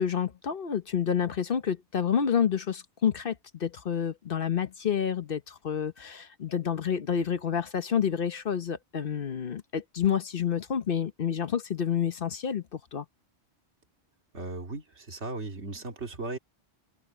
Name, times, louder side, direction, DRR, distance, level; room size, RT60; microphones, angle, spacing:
voice 1, 0.0-13.0, left 8 dB, 55° left, 1.1 m, -29 dB
voice 2, 14.3-16.4, right 3 dB, 80° right, 2.6 m, -37 dB
omnidirectional pair, 1.1 m